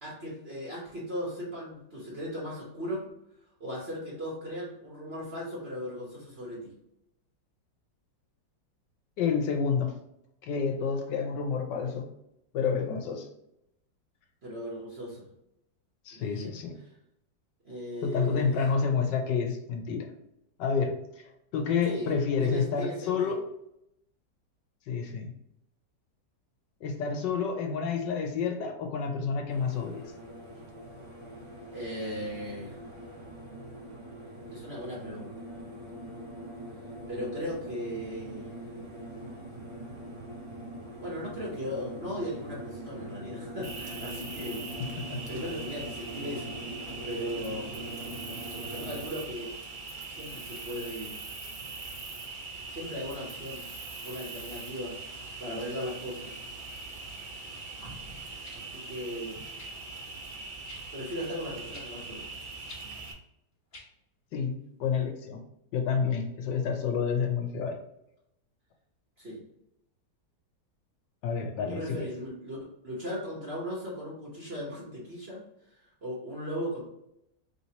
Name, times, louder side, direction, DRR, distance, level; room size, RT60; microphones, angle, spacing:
voice 1, 0.0-3.1 3.6-6.7 14.4-15.3 16.1-16.5 17.6-18.6 21.8-23.4 31.7-32.7 34.5-35.3 37.1-38.5 41.0-44.6 45.3-47.7 48.6-49.6 50.1-51.2 52.7-53.6 54.0-55.0 55.4-56.3 58.5-59.4 60.9-62.3 69.2-69.4 71.7-75.4 75.7-76.8, equal, 40° right, -6 dB, 1.3 m, -37 dB
voice 2, 9.2-9.9 10.4-12.1 12.5-13.3 16.1-16.7 18.0-20.1 20.6-21.0 21.5-23.4 24.9-25.3 26.8-30.0 45.1-45.2 64.3-65.4 65.7-67.8 71.2-72.1, left 6 dB, 80° left, 3 dB, 1.3 m, -29 dB
sound 1, 29.5-49.1, right 1 dB, 20° right, 1.3 m, -42 dB
Cricket, 43.6-63.1, right 3 dB, 85° right, 0.4 m, -42 dB
sound 2, 58.4-58.6 59.6-59.8 60.7-60.9 61.7-61.9 62.7-62.9 63.7-63.9 64.8-64.9, left 2 dB, 45° left, 1.1 m, -48 dB
4.2 x 3.3 x 2.9 m, 0.81 s
omnidirectional pair, 1.9 m